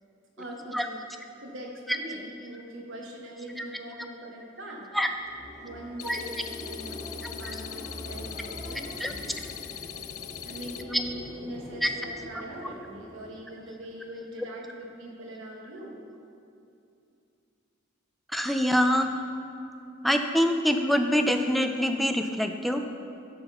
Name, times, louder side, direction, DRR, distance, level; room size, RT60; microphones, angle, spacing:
voice 1, 0.4-1.0 1.4-4.9 5.6-9.4 10.4-16.0, equal, 65° right, -1 dB, 1.3 m, -42 dB
sound 1, 5.0-14.1, left 1 dB, 30° left, 1.0 m, -43 dB
sound 2, 6.0-10.8, left 12 dB, 80° left, 0.4 m, -41 dB
voice 2, 7.2-7.6 9.0-9.1 10.9-11.0 11.8-11.9 18.3-19.1 20.0-22.8, equal, ahead, 5 dB, 0.3 m, -25 dB
12.0 x 4.0 x 5.6 m, 2.6 s
head